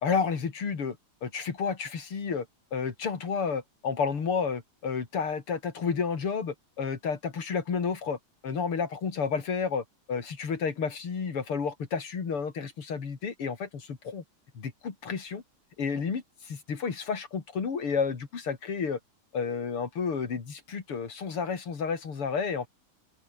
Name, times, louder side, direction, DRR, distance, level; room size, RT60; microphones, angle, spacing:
voice 1, 0.0-2.5 2.7-8.2 8.4-14.2 14.5-15.4 15.8-19.0 19.3-22.7, left 5 dB, 80° left, 3.9 m, -31 dB
open air
omnidirectional pair, 2.4 m